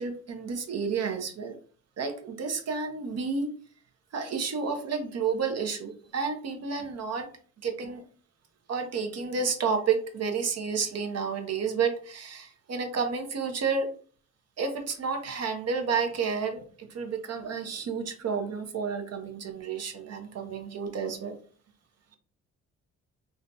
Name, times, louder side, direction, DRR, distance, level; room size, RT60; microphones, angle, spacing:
voice 1, 0.0-1.6 2.0-3.5 4.1-7.3 7.6-8.0 8.7-13.9 14.6-21.4, right 5 dB, 50° right, 5 dB, 0.9 m, -31 dB
3.7 x 2.2 x 2.7 m, 0.43 s
supercardioid pair, 60°, 33 cm